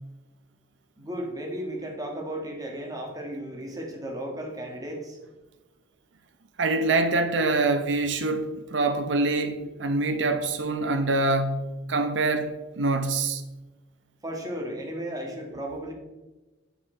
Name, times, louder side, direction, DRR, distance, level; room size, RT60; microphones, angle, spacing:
voice 1, 1.0-5.2 14.2-15.9, right 1 dB, 20° right, 1.6 m, -34 dB
voice 2, 6.6-13.4, right 3 dB, 80° right, 0.8 m, -25 dB
7.3 x 7.0 x 4.3 m
head